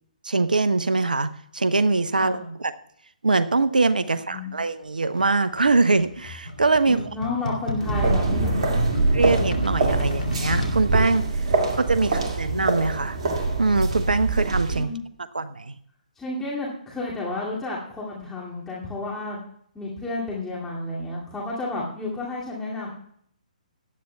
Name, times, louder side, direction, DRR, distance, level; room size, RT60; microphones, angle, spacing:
voice 1, 0.2-2.7 3.2-7.0 9.1-11.2 11.8-13.2 13.6-14.9 15.3-15.8, right 3 dB, 75° right, 13 dB, 0.8 m, -23 dB
voice 2, 2.1-2.5 4.1-4.5 6.8-8.8 11.5-12.1 14.7-15.0 16.2-19.4 19.7-22.9, left 2 dB, 10° left, -7 dB, 2.4 m, -32 dB
sound 1, 5.2-10.8, left 2 dB, 70° left, 2.6 m, -31 dB
sound 2, 7.8-14.8, right 3 dB, 50° right, 2.1 m, -24 dB
18.0 x 12.0 x 2.3 m, 0.66 s
figure-of-eight pair, 135°, 5 cm